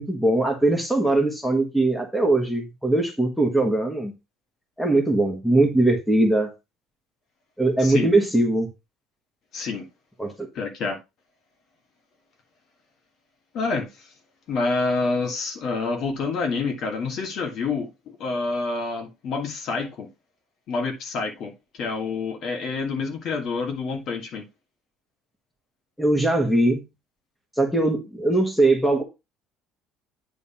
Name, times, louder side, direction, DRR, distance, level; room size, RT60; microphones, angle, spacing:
voice 1, 0.0-4.1 4.8-6.5 7.6-8.7 10.2-10.3 26.0-26.8 27.6-29.0, right 2 dB, ahead, 1.3 m, -21 dB
voice 2, 7.8-8.1 9.5-9.9 10.5-11.0 13.5-14.1 14.5-17.9 18.2-20.1 20.7-21.5 21.8-24.5, left 4 dB, 45° left, 1.7 m, -27 dB
9.4 x 3.5 x 5.7 m
cardioid pair, 170°, 0 cm